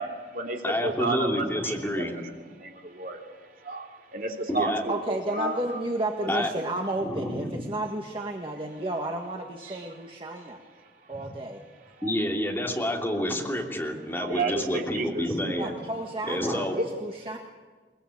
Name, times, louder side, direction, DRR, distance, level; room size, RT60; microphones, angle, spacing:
voice 1, 0.0-5.8 6.2-6.3 6.6-6.9 9.6-9.8 11.1-11.2 12.0-12.1 14.1-15.6 16.8-16.9, right 2 dB, 50° right, 2 dB, 2.9 m, -33 dB
voice 2, 0.6-2.1 4.5-4.8 6.3-6.5 7.0-7.7 12.0-15.7 16.2-16.8, left 1 dB, 10° left, 0 dB, 3.0 m, -28 dB
voice 3, 4.9-10.6 11.1-11.6 15.6-17.4, right 1 dB, 30° right, 2 dB, 1.6 m, -32 dB
22.0 x 22.0 x 8.6 m, 1.4 s
head